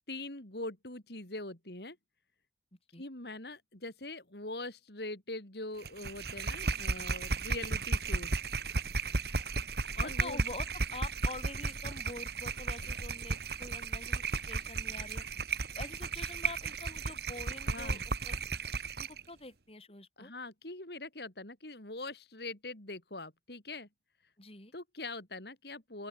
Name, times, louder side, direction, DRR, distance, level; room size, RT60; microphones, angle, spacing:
voice 1, 0.1-2.0 3.0-8.3 10.0-10.4 17.7-18.0 20.2-23.9 24.7-26.1, left 2 dB, 65° left, 3.9 m, -42 dB
sound 1, 5.8-19.2, right 3 dB, 60° right, 1.6 m, -34 dB
voice 2, 10.0-15.2 15.8-18.4 19.0-20.3 24.4-24.7, left 2 dB, 35° left, 6.0 m, -46 dB
open air
head